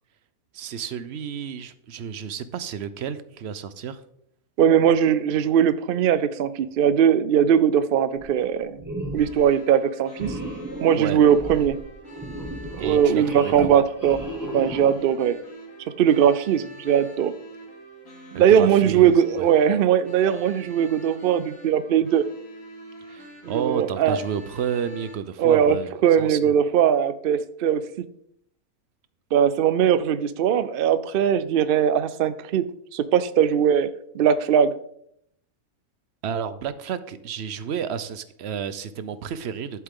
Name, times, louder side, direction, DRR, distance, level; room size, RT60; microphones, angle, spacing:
voice 1, 0.5-4.0 11.0-11.2 12.8-13.8 18.3-19.1 23.1-25.9 26.2-26.5 36.2-39.8, right 7 dB, 60° right, 13 dB, 0.8 m, -31 dB
voice 2, 4.6-8.8 9.1-10.4 10.8-11.8 12.8-14.2 14.5-15.4 16.0-17.3 18.3-22.2 23.4-24.2 25.4-28.1 29.3-32.7 32.9-33.9 34.1-34.7, right 8 dB, 80° right, 14 dB, 0.5 m, -20 dB
sound 1, 8.2-8.5 8.8-9.4 10.2-15.1, right 1 dB, 15° right, 1.5 m, -35 dB
sound 2, 9.1-25.1, right 2 dB, 70° left, 3.1 m, -45 dB
11.5 x 7.6 x 3.7 m, 0.72 s
omnidirectional pair, 1.5 m